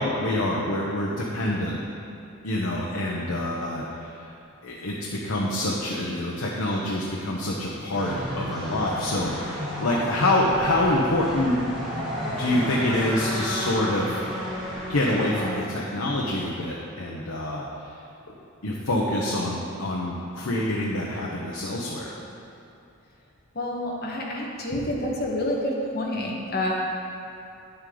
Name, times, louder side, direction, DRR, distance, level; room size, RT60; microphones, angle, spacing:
voice 1, 0.0-1.8 2.4-4.1 4.6-11.6 12.3-14.2 14.9-17.6 18.3-18.4 18.6-22.2, left 1 dB, 80° left, -3 dB, 0.9 m, -26 dB
sound 1, 7.9-15.6, equal, ahead, 1.7 m, -32 dB
voice 2, 23.5-26.7, left 1 dB, 45° left, -3 dB, 1.4 m, -28 dB
10.0 x 8.0 x 3.9 m, 2.6 s
head